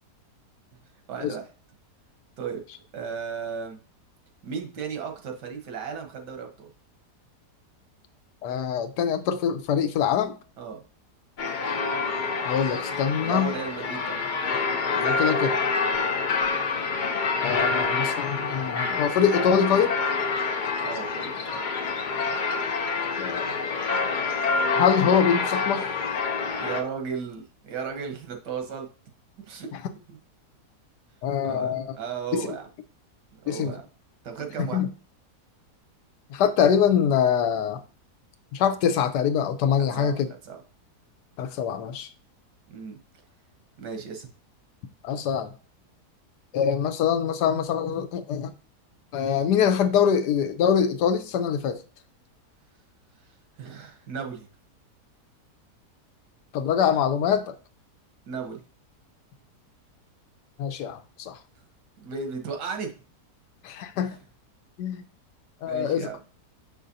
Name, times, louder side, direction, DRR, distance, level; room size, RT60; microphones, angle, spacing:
voice 1, 1.1-1.5 2.4-2.6 2.9-3.8 4.4-6.7 10.6-10.8 13.2-14.2 20.8-21.6 26.6-28.9 29.4-29.7 30.1-30.2 31.4-32.7 33.3-33.9 34.2-34.8 39.8-40.6 42.7-43.0 43.8-44.3 53.6-54.5 58.3-58.6 61.5-61.6 62.0-62.9 65.7-66.2, right 6 dB, 90° right, 1.7 m, -35 dB
voice 2, 8.4-10.4 12.5-13.5 14.9-15.6 17.4-19.9 23.2-23.7 24.7-25.9 31.2-31.9 32.3-32.5 33.5-33.8 34.7-34.9 36.3-37.8 38.5-40.3 41.4-42.1 45.0-45.5 46.5-48.5 49.1-51.8 56.5-57.5 60.6-61.4 63.6-64.2 64.8-65.0 65.6-66.1, left 8 dB, 80° left, 1.3 m, -24 dB
sound 1, 11.4-26.8, left 4 dB, 55° left, 0.5 m, -27 dB
6.5 x 5.6 x 2.6 m
omnidirectional pair, 1.7 m